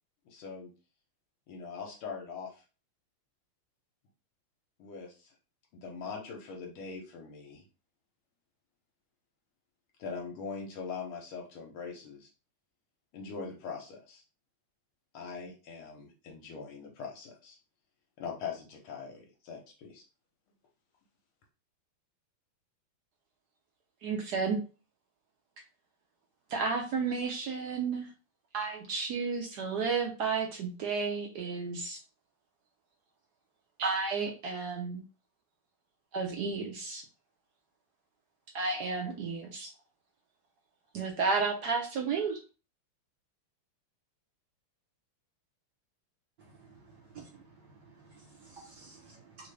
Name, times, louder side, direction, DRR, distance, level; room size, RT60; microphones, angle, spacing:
voice 1, 0.2-0.7 1.5-2.6 4.8-5.3 5.7-7.6 10.0-12.3 13.1-14.2 15.1-17.6 18.2-20.0, left 5 dB, 75° left, 0 dB, 1.6 m, -42 dB
voice 2, 24.0-24.6 26.5-28.1 28.5-32.0 33.8-35.0 36.1-37.0 38.5-39.7 40.9-42.4, right 4 dB, 75° right, 2 dB, 0.9 m, -32 dB
voice 3, 46.5-47.3 47.7-49.5, right 4 dB, 55° right, -6 dB, 1.6 m, -53 dB
3.6 x 2.5 x 3.2 m, 0.34 s
omnidirectional pair, 2.4 m